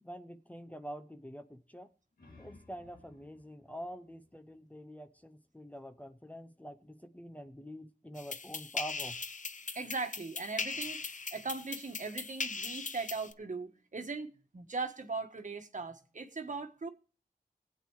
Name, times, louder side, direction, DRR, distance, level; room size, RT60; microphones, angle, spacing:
voice 1, 0.0-1.9 2.4-9.2, equal, 10° left, 0.7 m, -46 dB
sound 1, 1.9-5.3, left 2 dB, 80° left, 2.1 m, -61 dB
sound 2, 8.2-13.3, left 4 dB, 55° left, 0.7 m, -39 dB
voice 2, 9.7-11.0 11.3-14.3 14.5-16.9, right 4 dB, 55° right, 1.4 m, -39 dB
20.5 x 8.5 x 3.1 m
wide cardioid pair, 90°, 15 cm